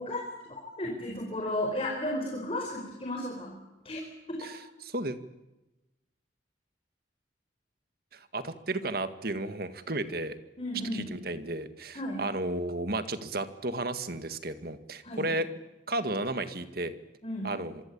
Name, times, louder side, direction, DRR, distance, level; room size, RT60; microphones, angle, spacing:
voice 1, 0.0-3.6 3.8-4.0 4.3-4.5 10.6-11.1 11.9-12.2 15.0-15.3 17.2-17.5, left 1 dB, 30° left, 0 dB, 4.7 m, -34 dB
voice 2, 4.4-5.2 8.1-10.4 10.9-15.5 15.9-16.9 17.4-17.8, right 2 dB, 50° right, 10 dB, 1.9 m, -33 dB
26.5 x 23.5 x 8.7 m, 1.0 s
head